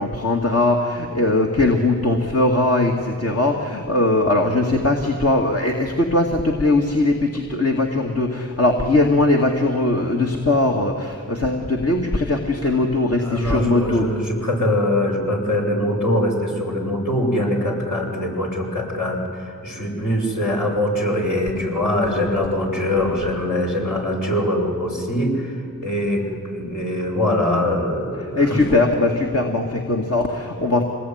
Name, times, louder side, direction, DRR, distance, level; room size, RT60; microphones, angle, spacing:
voice 1, 0.0-14.1 28.2-30.8, left 2 dB, 45° left, 0 dB, 2.5 m, -20 dB
voice 2, 13.2-25.6 25.8-28.6, left 1 dB, 60° left, -2 dB, 7.4 m, -23 dB
27.0 x 20.0 x 9.7 m, 2.2 s
cardioid pair, 45°, 35 cm